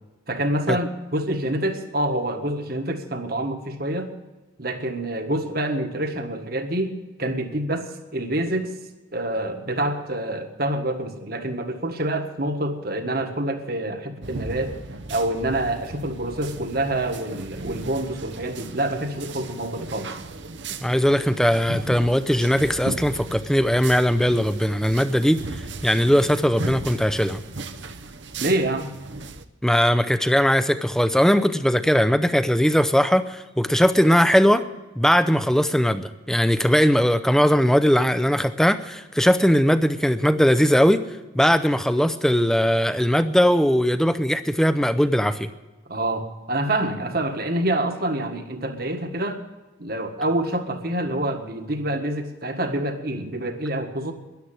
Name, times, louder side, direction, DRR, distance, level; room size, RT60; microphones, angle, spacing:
voice 1, 0.3-4.1 4.6-8.7 9.1-14.7 15.1-20.1 28.4-28.9 45.9-49.4 49.8-54.1, right 1 dB, 50° right, 6 dB, 1.6 m, -27 dB
sound 1, 14.2-29.4, right 3 dB, 65° right, 0.9 m, -36 dB
voice 2, 20.8-25.4 25.8-27.4 29.6-34.6 35.0-41.0 41.3-45.5, equal, 5° left, 11 dB, 0.6 m, -19 dB
13.5 x 11.0 x 7.5 m, 1.2 s
head